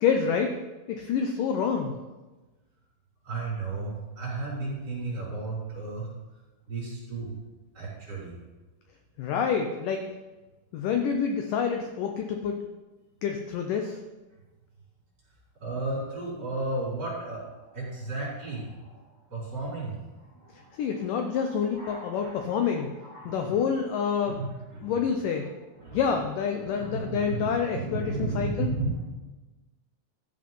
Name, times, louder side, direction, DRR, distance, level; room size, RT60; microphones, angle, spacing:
voice 1, 0.0-0.6 0.9-2.0 9.2-10.0 10.7-12.6 13.2-14.0 20.8-22.9 23.3-24.4 24.8-25.5 25.9-28.7, left 6 dB, 80° left, 4 dB, 1.9 m, -27 dB
voice 2, 3.2-6.1 6.7-7.3 7.7-8.3 15.6-19.0 19.3-20.0 20.4-21.0 21.3-21.4 21.7-22.7 23.0-23.6 24.4-24.9 25.8-26.0 26.6-29.0, right 3 dB, 25° right, -7 dB, 5.2 m, -34 dB
13.5 x 7.8 x 5.4 m, 1.2 s
omnidirectional pair, 4.8 m